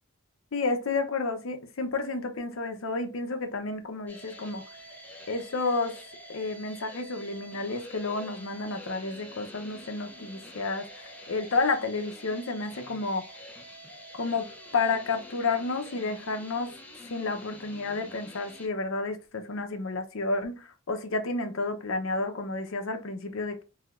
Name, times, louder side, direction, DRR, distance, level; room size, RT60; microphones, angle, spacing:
voice 1, 0.5-4.6 5.3-6.0 6.3-13.2 14.2-16.7 17.1-23.6, left 3 dB, 75° left, 0.7 m, -31 dB
sound 1, 4.1-18.7, equal, 10° left, 0.5 m, -47 dB
3.3 x 2.8 x 2.4 m
head